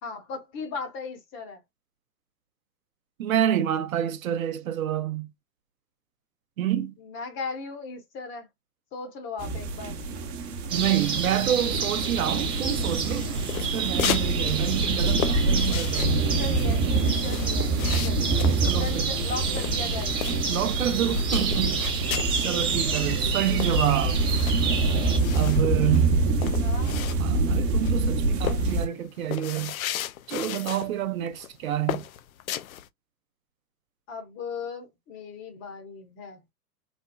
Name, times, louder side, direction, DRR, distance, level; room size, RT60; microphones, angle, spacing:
voice 1, 0.0-1.6 7.0-8.5 8.9-10.0 16.0-18.2 18.7-20.2 26.4-27.0 34.1-36.4, left 4 dB, 25° left, 0.9 m, -37 dB
voice 2, 3.2-5.3 6.6-6.9 10.7-16.2 18.6-19.1 20.5-21.9 22.4-24.2 25.3-26.1 27.2-29.7 30.3-32.0, right 11 dB, 55° right, 0.7 m, -28 dB
sound 1, 9.4-28.9, right 3 dB, 30° right, 0.9 m, -26 dB
sound 2, 10.7-25.2, right 4 dB, 10° right, 0.4 m, -30 dB
sound 3, 13.1-14.3 14.6-20.7 21.0-22.4 22.8-22.9 23.0-27.5 27.8-28.1 28.4-30.9 31.3-31.5 31.9-32.9, left 12 dB, 60° left, 0.5 m, -34 dB
4.2 x 2.2 x 2.2 m
hypercardioid pair, 115°, 49 cm